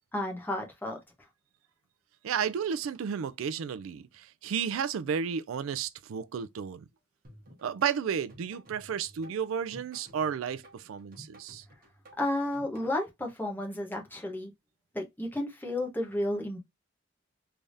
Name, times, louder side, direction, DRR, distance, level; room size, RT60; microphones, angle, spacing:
voice 1, 0.1-1.0 12.2-14.5 14.9-16.6, left 1 dB, 10° left, 1.0 m, -32 dB
voice 2, 2.2-6.9 7.6-11.7, right 7 dB, 80° right, 0.4 m, -32 dB
sound 1, 7.2-12.9, right 1 dB, 45° right, 1.3 m, -54 dB
3.5 x 3.4 x 2.6 m
head